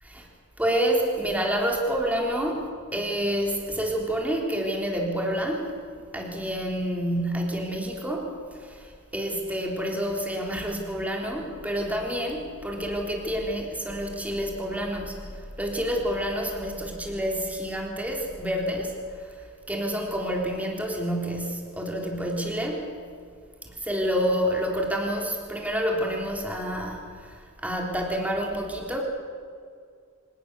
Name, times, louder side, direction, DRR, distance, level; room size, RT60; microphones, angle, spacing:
voice 1, 0.6-5.7 6.1-22.9 23.6-29.0, equal, 5° right, 0 dB, 3.4 m, -28 dB
25.5 x 19.0 x 7.1 m, 2.2 s
head